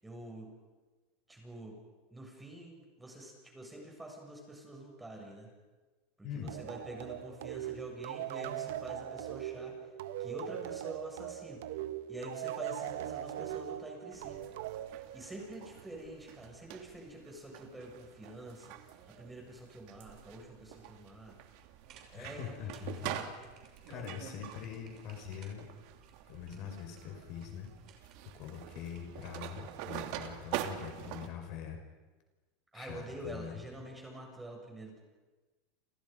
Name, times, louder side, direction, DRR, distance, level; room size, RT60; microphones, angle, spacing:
voice 1, 0.0-0.5 1.3-1.8 2.1-5.5 6.2-9.8 10.2-11.6 12.1-14.4 15.1-18.8 19.1-21.4 22.1-23.3 23.9-24.0 32.7-35.0, right 1 dB, 10° right, 0 dB, 7.4 m, -47 dB
sound 1, 6.5-15.7, right 12 dB, 80° right, 1.3 m, -40 dB
sound 2, 14.1-31.3, right 11 dB, 65° right, 2.7 m, -45 dB
sound 3, 21.7-29.9, right 7 dB, 45° right, 6.1 m, -62 dB
voice 2, 22.1-23.2 23.9-25.7 26.3-27.7 28.0-28.1 28.3-31.8 32.7-33.6, left 9 dB, 55° left, 4 dB, 5.6 m, -43 dB
30.0 x 28.0 x 5.5 m, 1.3 s
supercardioid pair, 135°, 0 cm